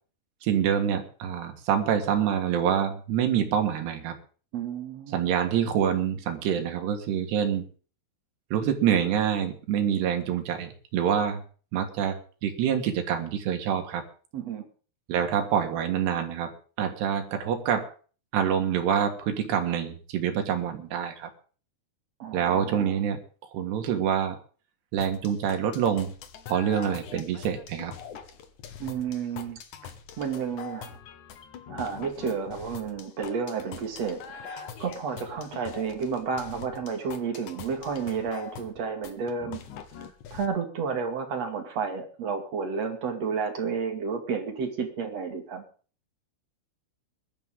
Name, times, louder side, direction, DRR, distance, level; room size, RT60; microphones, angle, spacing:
voice 1, 0.4-4.2 5.1-7.6 8.5-11.4 11.7-14.0 15.1-16.5 16.8-17.9 18.3-21.3 22.3-23.2 23.5-24.4 24.9-26.1 26.5-27.9, right 8 dB, 90° right, 4 dB, 3.8 m, -26 dB
voice 2, 4.5-5.3 14.3-14.7 22.2-22.9 28.8-29.9 30.2-31.0 31.7-39.6 40.0-40.1 40.3-45.6, right 5 dB, 45° right, 4 dB, 3.0 m, -31 dB
sound 1, 25.0-40.5, left 7 dB, 65° left, 2.2 m, -43 dB
21.0 x 12.0 x 3.7 m, 0.39 s
omnidirectional pair, 4.7 m